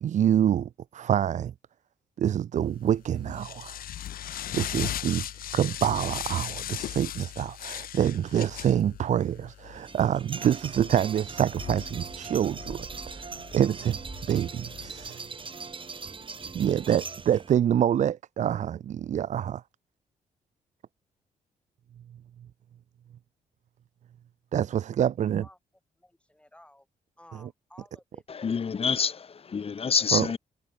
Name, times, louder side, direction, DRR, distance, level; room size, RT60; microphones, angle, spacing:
voice 1, 0.0-1.5 2.2-3.8 4.5-5.3 5.5-14.0 14.3-15.2 16.5-19.6 24.5-25.5 30.1-30.3, right 10 dB, 55° right, 0.5 m, -26 dB
sound 1, 2.7-15.1, left 11 dB, 75° left, 1.7 m, -39 dB
sound 2, 9.7-17.5, right 4 dB, 35° right, 4.7 m, -40 dB
voice 2, 24.9-25.6 26.0-26.9 27.2-28.5, left 1 dB, 5° left, 6.1 m, -55 dB
voice 3, 28.3-30.4, left 6 dB, 40° left, 1.3 m, -27 dB
cardioid pair, 85°, 15 cm